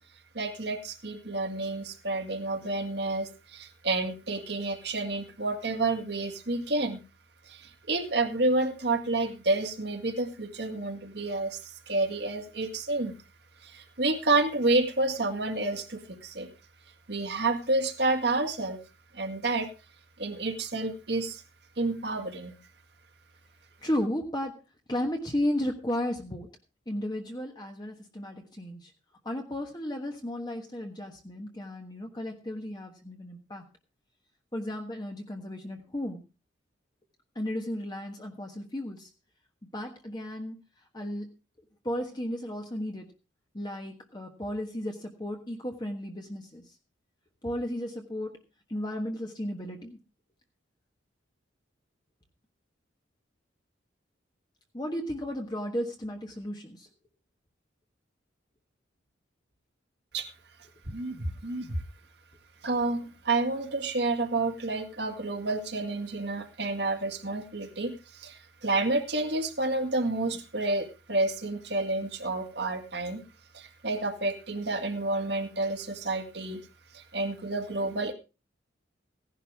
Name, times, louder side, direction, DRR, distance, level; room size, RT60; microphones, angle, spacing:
voice 1, 0.3-7.0 7.5-13.1 13.6-16.5 17.1-18.8 19.1-19.7 20.2-21.4 21.8-22.6 60.1-60.3 60.9-61.8 62.6-73.2 73.5-76.6 76.9-78.1, right 2 dB, 55° right, 5 dB, 2.0 m, -29 dB
voice 2, 23.8-24.6 24.9-26.5 26.9-28.9 29.2-33.6 34.5-36.2 37.3-39.1 39.7-40.6 40.9-41.3 41.8-43.1 43.5-46.7 47.4-48.4 48.7-50.0 54.7-56.9, left 1 dB, 20° left, 2 dB, 1.4 m, -34 dB
16.5 x 11.0 x 3.5 m, 0.32 s
head